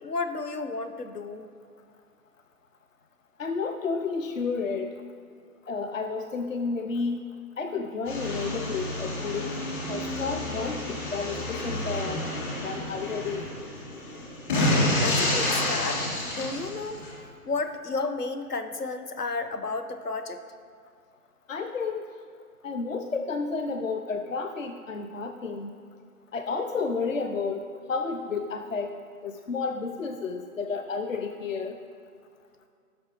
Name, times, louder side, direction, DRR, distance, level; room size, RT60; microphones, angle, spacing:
voice 1, 0.0-1.4 15.0-17.0 17.4-20.4, left 3 dB, 75° left, 9 dB, 1.0 m, -32 dB
voice 2, 3.4-4.9 5.7-7.2 7.6-9.5 9.9-12.2 12.6-13.5 21.5-22.1 22.6-25.7 26.3-27.6 27.9-28.9 29.2-31.8, left 4 dB, 55° left, 6 dB, 0.6 m, -31 dB
sound 1, 8.0-17.1, left 1 dB, 30° left, 2.6 m, -29 dB
16.5 x 6.2 x 3.0 m, 2.2 s
figure-of-eight pair, 145°, 47 cm